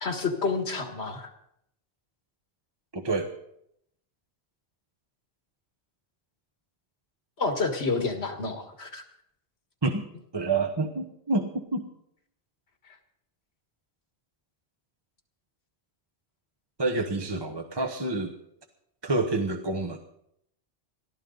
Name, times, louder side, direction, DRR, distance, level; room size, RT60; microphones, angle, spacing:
voice 1, 0.0-1.3 7.4-9.0, left 3 dB, 85° left, 5 dB, 2.0 m, -29 dB
voice 2, 2.9-3.3 9.8-10.0 10.3-11.9 16.8-18.3 19.0-20.0, right 3 dB, 25° right, 3 dB, 1.1 m, -28 dB
22.0 x 14.0 x 4.0 m, 0.74 s
omnidirectional pair, 1.1 m